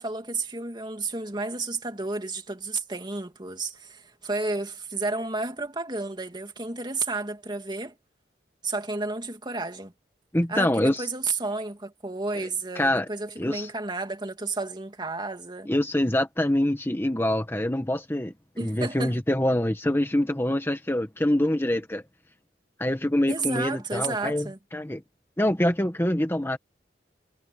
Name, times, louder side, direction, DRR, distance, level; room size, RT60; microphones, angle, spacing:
voice 1, 0.0-8.0 8.6-9.9 10.5-15.7 18.6-19.2 23.3-24.6, right 3 dB, 25° right, 2.7 m, -32 dB
voice 2, 10.3-11.1 12.7-13.1 13.4-13.7 15.6-18.3 18.6-22.0 22.8-25.0 25.4-26.6, left 1 dB, 15° left, 1.5 m, -25 dB
head